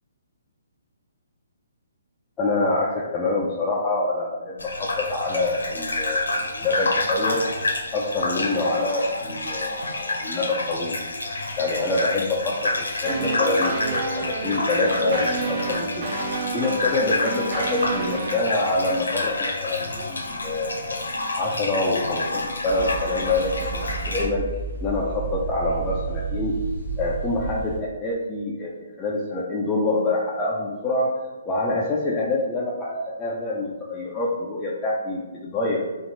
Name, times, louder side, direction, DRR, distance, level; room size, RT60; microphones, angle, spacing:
voice 1, 2.4-7.4 7.9-11.0 11.6-16.1 16.5-21.0 21.4-24.5 24.8-26.6 27.0-28.7 29.0-31.2 31.5-35.8, left 2 dB, 15° left, -5 dB, 0.4 m, -26 dB
Gurgling / Bathtub (filling or washing), 4.6-24.3, left 2 dB, 70° left, 0.7 m, -29 dB
sound 1, 13.0-18.4, right 3 dB, 30° right, 0.6 m, -29 dB
sound 2, 22.7-27.8, right 5 dB, 55° right, 1.5 m, -31 dB
4.1 x 2.5 x 2.7 m, 1.2 s
figure-of-eight pair, 130°, 0 cm